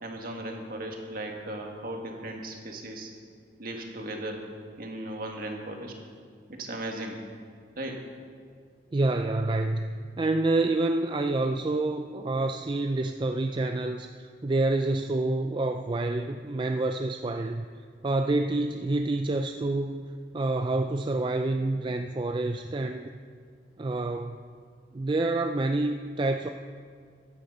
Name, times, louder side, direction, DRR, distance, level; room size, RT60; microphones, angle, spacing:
voice 1, 0.0-3.1 3.6-4.5 4.8-5.9 6.5-7.2 7.8-8.0, right 1 dB, 55° right, 2 dB, 1.8 m, -37 dB
voice 2, 8.9-17.7 18.0-20.1 20.3-23.1 23.8-24.4 24.9-26.5, right 2 dB, 25° right, 6 dB, 0.4 m, -28 dB
14.5 x 10.0 x 5.6 m, 2.1 s
head